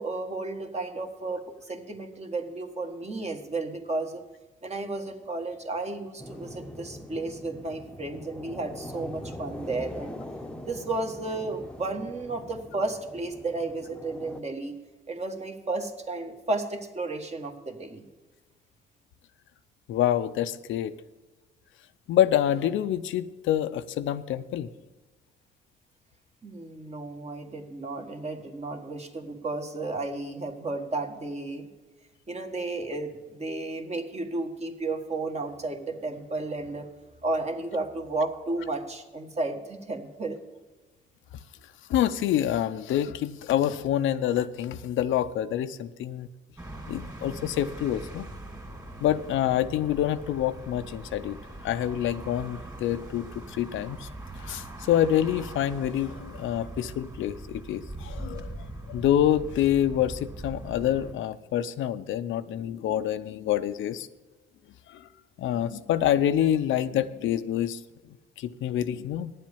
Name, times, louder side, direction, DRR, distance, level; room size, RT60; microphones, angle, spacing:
voice 1, 0.0-4.2 4.6-10.1 10.6-14.8 15.1-18.0 26.4-31.7 32.3-36.9 37.2-40.4, right 2 dB, 35° right, 4 dB, 1.6 m, -33 dB
sound 1, 6.2-14.4, left 1 dB, 5° left, 0.9 m, -42 dB
voice 2, 19.9-21.0 22.1-24.7 41.9-46.3 46.9-48.3 49.0-51.4 51.6-54.1 54.4-64.1 64.9-65.1 65.4-67.8 68.4-69.3, left 11 dB, 75° left, 12 dB, 0.6 m, -27 dB
sound 2, 46.6-61.1, right 1 dB, 15° right, 2.8 m, -41 dB
9.9 x 7.6 x 7.1 m, 1.2 s
cardioid pair, 90°, 20 cm